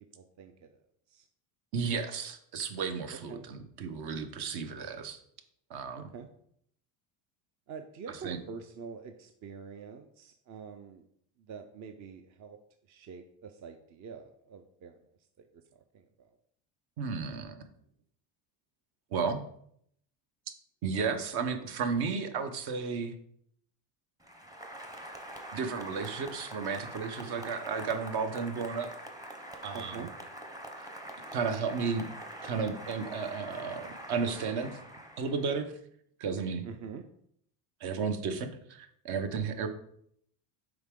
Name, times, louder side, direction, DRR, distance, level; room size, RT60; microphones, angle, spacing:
voice 1, 0.1-1.3 3.1-3.5 6.0-6.3 7.7-11.1 11.4-12.6 12.9-15.0 15.4-16.4 29.7-30.1 36.6-37.0, right 6 dB, 40° right, 7 dB, 0.6 m, -46 dB
voice 2, 1.7-5.2 5.7-6.1 8.2-8.4 17.0-17.6 19.1-19.4 20.8-23.1 25.5-28.9 29.6-29.9 31.3-32.0 32.4-34.8 35.2-35.7 36.2-36.7 37.8-39.7, right 5 dB, 60° right, 8 dB, 1.0 m, -33 dB
Applause, 24.2-35.7, right 1 dB, 10° right, 0.8 m, -44 dB
7.9 x 5.0 x 3.7 m, 0.69 s
cardioid pair, 135°, 44 cm